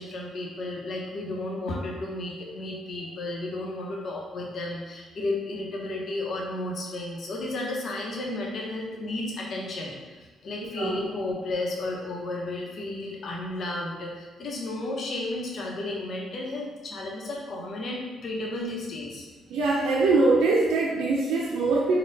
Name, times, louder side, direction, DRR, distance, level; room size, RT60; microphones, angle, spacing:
voice 1, 0.0-19.3, left 2 dB, 55° left, -1 dB, 0.9 m, -33 dB
voice 2, 19.5-22.0, right 3 dB, 85° right, -4 dB, 0.5 m, -22 dB
4.2 x 2.3 x 3.9 m, 1.3 s
cardioid pair, 90°, 0 cm